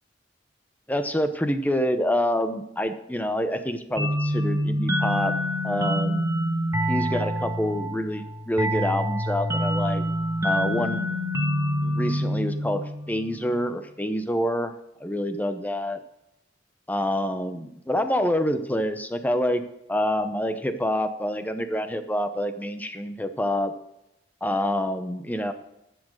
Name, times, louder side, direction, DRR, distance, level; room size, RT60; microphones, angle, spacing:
voice 1, 0.9-5.3 5.6-6.2 6.9-10.0 10.4-11.0 11.8-14.7 15.0-16.0 16.9-19.6 19.9-23.7 24.4-25.5, equal, 10° left, 8 dB, 0.8 m, -27 dB
sound 1, 4.0-13.3, equal, 15° right, 1.3 m, -26 dB
11.5 x 7.5 x 6.4 m, 0.82 s
head